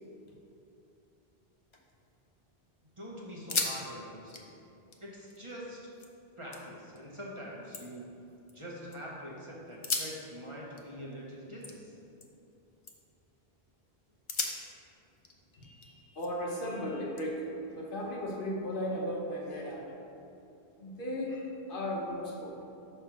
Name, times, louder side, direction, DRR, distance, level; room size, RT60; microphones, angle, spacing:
sound 1, 1.5-2.5 2.9-3.0 3.3-3.8 4.1-6.1 6.5-7.0 7.4-9.0 9.7-12.5 12.8-13.2 13.7-13.8 14.3-16.5 17.2-18.3, left 3 dB, 35° left, 0.5 m, -39 dB
voice 1, 3.0-4.5 5.0-5.9 6.4-8.1 8.5-12.0, equal, 30° right, -4 dB, 0.9 m, -44 dB
voice 2, 15.5-17.5 17.7-19.9 20.8-22.6, left 1 dB, 55° left, -2 dB, 1.0 m, -36 dB
5.0 x 4.4 x 6.0 m, 2.8 s
omnidirectional pair, 1.1 m